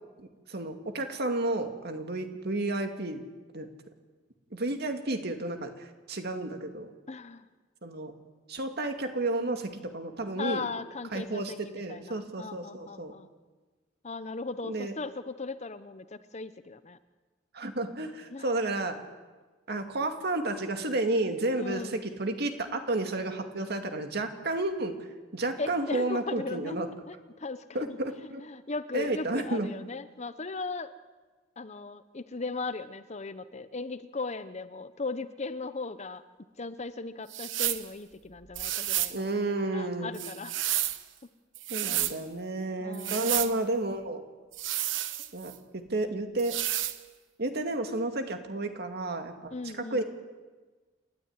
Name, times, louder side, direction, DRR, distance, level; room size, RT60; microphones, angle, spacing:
voice 1, 0.2-3.2 3.5-3.7 4.5-6.9 7.8-8.1 8.5-10.6 11.1-13.1 14.6-14.9 17.5-19.0 19.7-24.9 25.3-26.9 27.7-28.4 28.9-29.7 39.1-40.2 41.7-44.2 45.3-46.6 47.4-50.0, right 2 dB, 55° right, 6 dB, 2.3 m, -31 dB
voice 2, 7.1-7.5 10.4-13.3 14.0-17.0 18.3-18.5 21.6-22.0 25.6-30.9 31.6-36.2 36.6-39.3 39.7-40.5 41.8-42.0 42.8-43.7 49.5-50.0, left 3 dB, 35° left, 12 dB, 0.9 m, -38 dB
sound 1, 37.3-37.9 38.5-39.2 40.1-41.0 41.5-42.2 42.9-43.5 44.5-45.6 46.4-47.0, right 13 dB, 75° right, 1.1 m, -31 dB
28.5 x 13.0 x 9.6 m, 1.3 s
head